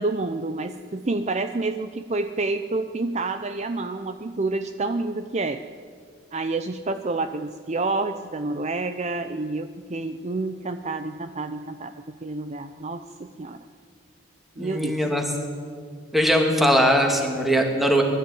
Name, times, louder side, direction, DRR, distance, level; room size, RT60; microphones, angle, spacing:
voice 1, 0.0-5.6 6.3-13.6 14.6-15.0, right 3 dB, 30° right, 8 dB, 0.6 m, -28 dB
voice 2, 14.6-15.2 16.1-18.0, equal, ahead, 2 dB, 2.4 m, -20 dB
21.5 x 13.5 x 9.3 m, 2.1 s
head